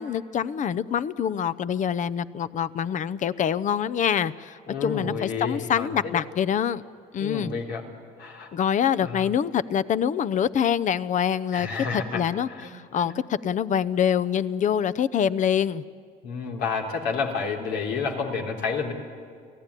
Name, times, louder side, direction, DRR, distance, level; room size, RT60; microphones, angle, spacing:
voice 1, 0.0-6.8 7.1-7.5 8.5-11.7 11.9-15.8, left 8 dB, 45° left, 17 dB, 0.8 m, -25 dB
voice 2, 4.7-6.2 7.2-7.8 8.2-8.5 9.0-9.3 11.5-12.2 12.5-12.7 13.0-13.1 16.2-18.9, left 5 dB, 90° left, 1 dB, 3.7 m, -30 dB
29.5 x 17.5 x 10.0 m, 2.1 s
cardioid pair, 110°, 17 cm